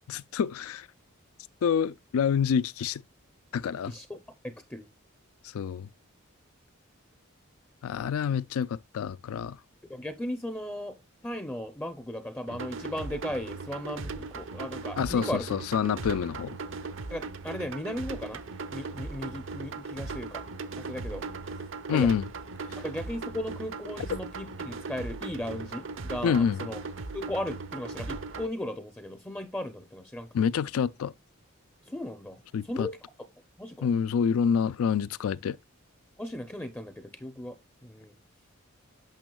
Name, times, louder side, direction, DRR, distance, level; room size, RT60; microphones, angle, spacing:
voice 1, 0.1-0.9 1.6-3.0 3.5-3.9 5.5-5.9 7.8-9.6 15.0-16.6 21.9-22.3 26.2-26.6 30.3-31.1 32.5-32.9 33.8-35.6, left 7 dB, 85° left, 0.3 m, -27 dB
voice 2, 3.9-4.2 4.4-4.9 9.9-11.0 11.2-15.5 17.1-18.4 18.7-20.4 20.8-21.2 21.9-22.1 22.8-26.8 27.1-30.3 31.9-32.4 32.6-33.0 33.6-33.9 36.2-37.6 37.8-38.1, left 1 dB, 10° left, 0.5 m, -36 dB
sound 1, 12.5-28.5, right 3 dB, 65° right, 0.6 m, -38 dB
9.0 x 6.1 x 2.2 m
head